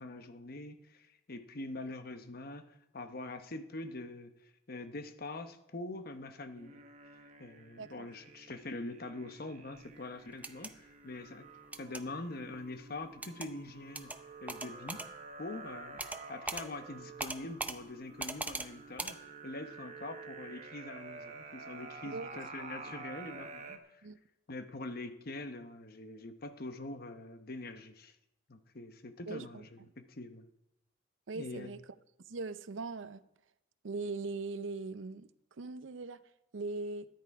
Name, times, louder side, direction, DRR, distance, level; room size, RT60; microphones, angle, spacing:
voice 1, 0.0-6.8 7.4-11.5 11.8-14.1 14.4-15.0 15.4-16.0 16.3-24.0 24.5-28.2 28.5-30.4 31.3-31.7, left 2 dB, 55° left, 1.0 m, -44 dB
sound 1, 6.6-23.8, right 4 dB, 40° right, 1.2 m, -50 dB
sound 2, 10.3-10.7 11.7-12.0 13.2-13.5 13.9-14.2 14.5-15.1 16.0-16.2 16.5-16.6 17.2-17.8 18.2-18.7 19.0-19.1, right 2 dB, 10° right, 0.5 m, -39 dB
voice 2, 22.0-22.4 22.8-22.9 24.0-24.2 29.3-29.6 31.3-31.8 32.3-33.2 33.8-35.3 35.6-36.2 36.5-37.1, right 3 dB, 80° right, 0.6 m, -40 dB
13.0 x 10.5 x 4.8 m
head